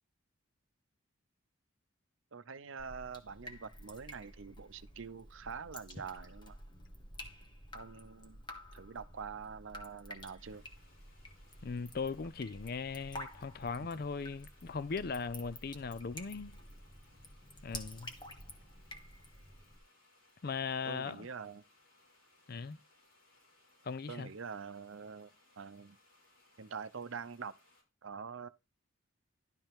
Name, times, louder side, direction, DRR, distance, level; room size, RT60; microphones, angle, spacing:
voice 1, 2.3-6.6 7.7-8.4 8.7-10.6 20.9-21.6 24.1-25.3 25.6-26.0 26.6-27.5 28.0-28.5, right 5 dB, 70° right, 0.6 m, -45 dB
Drip, 2.8-19.8, left 1 dB, 20° left, 1.3 m, -51 dB
sound 1, 10.4-27.8, left 2 dB, 85° left, 5.2 m, -67 dB
voice 2, 11.6-16.6 17.6-18.1 20.4-21.3 22.5-22.8 23.8-24.3, left 5 dB, 45° left, 0.5 m, -39 dB
11.5 x 5.6 x 3.6 m
head